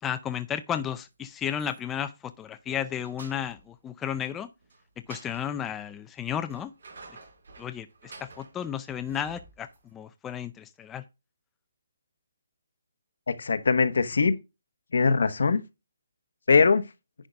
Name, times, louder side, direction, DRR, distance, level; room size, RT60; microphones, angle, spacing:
voice 1, 0.0-4.5 5.1-6.7 7.6-11.0, left 9 dB, 10° left, 0.4 m, -33 dB
sound 1, 1.4-2.1 2.5-3.8 4.6-5.4 6.2-9.9, right 3 dB, 75° right, 4.5 m, -50 dB
voice 2, 13.3-14.3 14.9-15.6 16.5-16.9, left 4 dB, 75° left, 1.1 m, -21 dB
10.0 x 3.7 x 5.2 m
hypercardioid pair, 165°, 0 cm